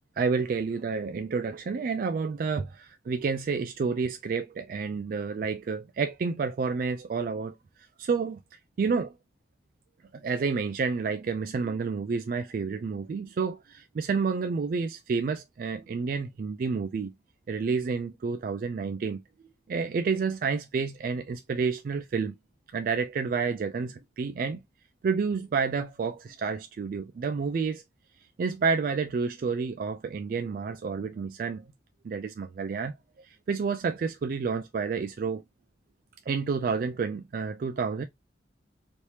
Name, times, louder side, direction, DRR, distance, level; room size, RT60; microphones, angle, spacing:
voice 1, 0.2-8.4 8.8-9.1 10.1-17.1 17.5-19.2 19.7-22.3 22.7-24.6 25.0-27.8 28.4-31.6 32.0-35.4 36.3-38.0, right 5 dB, 50° right, 0.3 m, -30 dB
3.2 x 2.8 x 3.0 m
head